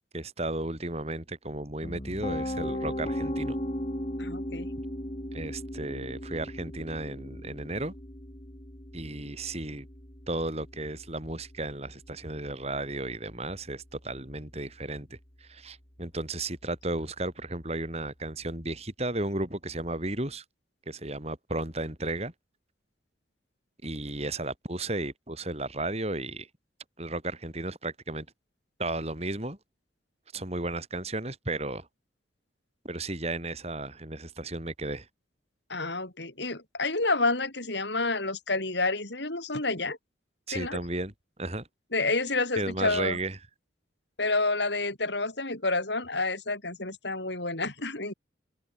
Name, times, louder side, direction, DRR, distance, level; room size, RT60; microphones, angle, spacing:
voice 1, 0.1-3.6 5.3-7.9 8.9-9.9 10.3-20.4 20.9-22.3 23.8-26.5 27.0-28.3 28.8-29.6 30.3-31.9 32.8-35.1 40.5-41.1 41.4-41.7 42.6-43.4, right 2 dB, 35° right, 5.0 m, -34 dB
Piano, 1.8-13.7, equal, 30° left, 4.0 m, -37 dB
voice 2, 4.2-4.7 35.7-40.0 40.5-40.8 41.9-43.2 44.2-48.1, left 3 dB, 70° left, 5.9 m, -29 dB
head